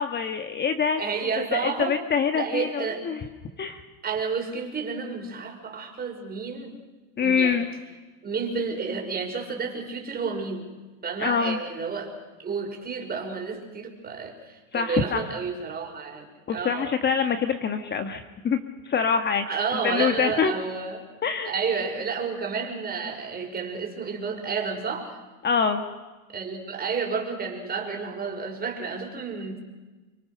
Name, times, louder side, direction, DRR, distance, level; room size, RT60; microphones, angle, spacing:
voice 1, 0.0-1.0 1.5-3.3 3.6-3.8 7.2-7.7 11.2-11.6 14.7-15.2 16.5-18.6 18.8-20.5 21.2-21.5 25.4-25.8, left 6 dB, 25° left, 7 dB, 1.6 m, -25 dB
voice 2, 1.0-2.0 2.3-3.0 4.0-6.7 7.2-7.6 8.2-10.7 11.0-12.1 12.4-16.9 19.5-21.0 21.5-25.2 26.3-29.6, right 5 dB, 20° right, 2 dB, 5.4 m, -31 dB
29.0 x 24.5 x 6.7 m, 1.2 s
supercardioid pair, 120°, 40 cm